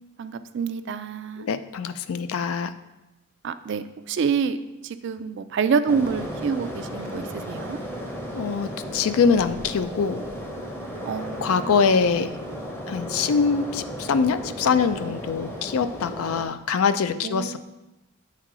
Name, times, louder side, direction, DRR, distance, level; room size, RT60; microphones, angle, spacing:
voice 1, 0.2-1.5 3.4-4.6 4.8-7.8 11.0-11.8 17.2-17.6, right 6 dB, 55° right, 11 dB, 0.3 m, -27 dB
voice 2, 1.4-2.7 8.3-10.2 11.4-12.3 12.9-17.6, left 5 dB, 80° left, 12 dB, 0.4 m, -23 dB
sound 1, 5.9-16.4, equal, 10° left, 0.6 m, -35 dB
7.6 x 3.6 x 4.8 m, 0.98 s
head